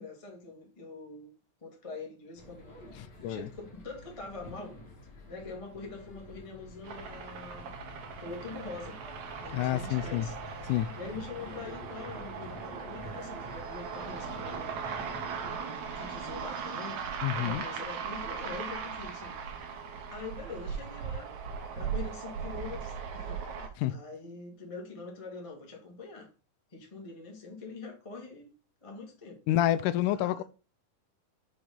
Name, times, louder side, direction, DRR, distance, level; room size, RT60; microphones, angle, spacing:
voice 1, 0.0-2.7 3.2-4.8 5.3-7.7 8.2-9.0 9.4-14.8 15.5-17.0 17.3-19.4 20.1-21.3 21.7-26.3 26.7-28.5 28.8-29.4 30.1-30.4, left 3 dB, 15° left, 1.0 m, -44 dB
sound 1, 2.3-15.5, left 1 dB, 35° left, 2.0 m, -48 dB
sound 2, 6.8-23.7, right 6 dB, 65° right, 2.3 m, -39 dB
voice 2, 9.5-10.3 10.7-10.9 17.2-17.6 23.8-23.9 29.5-30.4, left 13 dB, 80° left, 1.9 m, -28 dB
5.8 x 5.2 x 5.2 m
omnidirectional pair, 3.9 m